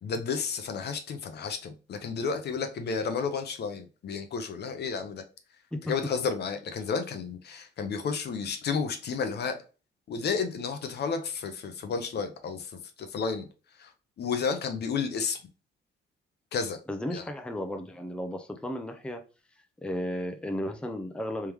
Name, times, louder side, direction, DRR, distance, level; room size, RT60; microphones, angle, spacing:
voice 1, 0.0-5.2 5.8-9.6 10.1-13.5 13.8-13.9 14.2-15.4 16.5-16.8 17.1-17.2, left 5 dB, 55° left, 0.7 m, -32 dB
voice 2, 16.9-19.2 19.8-21.5, left 1 dB, 5° left, 0.6 m, -34 dB
3.6 x 3.3 x 3.0 m
cardioid pair, 90°, 20 cm